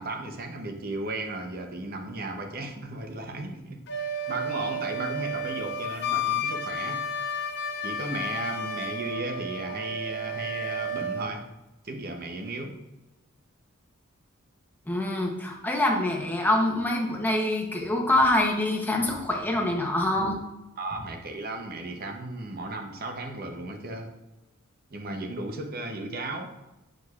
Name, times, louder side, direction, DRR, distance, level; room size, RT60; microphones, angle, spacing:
voice 1, 0.0-7.1 7.8-11.4 11.8-12.8 20.8-24.1 24.9-26.5, right 2 dB, 45° right, 4 dB, 0.8 m, -35 dB
Wind instrument woodwind instrument, 3.9-11.3, left 1 dB, 50° left, 0.6 m, -32 dB
voice 2, 14.9-20.4, left 1 dB, 10° left, 0 dB, 0.8 m, -25 dB
7.8 x 5.1 x 2.4 m, 1.0 s
head